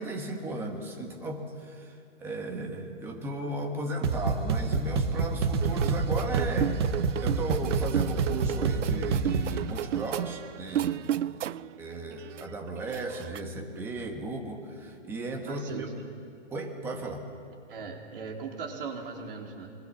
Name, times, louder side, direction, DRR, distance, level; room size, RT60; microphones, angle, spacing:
voice 1, 0.0-6.8 7.2-11.4 11.8-15.9 16.5-17.2, right 2 dB, 5° right, 2 dB, 1.2 m, -35 dB
sound 1, 4.0-9.6, right 4 dB, 20° right, 0.8 m, -28 dB
sound 2, 5.6-11.8 12.1-13.4, right 11 dB, 80° right, 0.6 m, -33 dB
voice 2, 15.5-15.9 17.7-19.7, right 5 dB, 50° right, 1 dB, 3.6 m, -39 dB
24.5 x 21.5 x 7.2 m, 2.4 s
hypercardioid pair, 170°, 36 cm